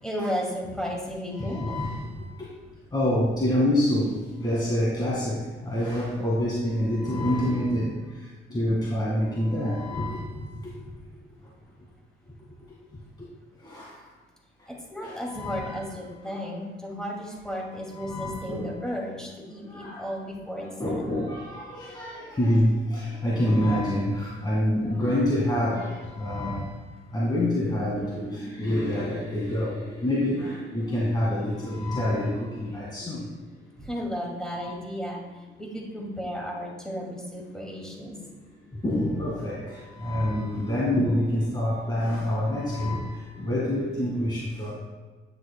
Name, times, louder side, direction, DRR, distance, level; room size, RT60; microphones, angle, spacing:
voice 1, 0.0-2.1 14.7-21.0 33.8-35.2 35.6-38.1, equal, 5° left, -2 dB, 2.4 m, -34 dB
voice 2, 1.4-2.0 2.9-4.1 4.4-5.3 5.7-7.9 8.5-10.3 13.7-13.8 15.0-15.8 18.0-18.7 19.7-20.0 20.6-25.9 26.2-26.6 27.1-33.2 34.6-34.7 38.8-39.6 40.0-44.7, left 1 dB, 20° left, -6 dB, 1.9 m, -26 dB
9.9 x 7.7 x 2.3 m, 1.3 s
cardioid pair, 90°, 20 cm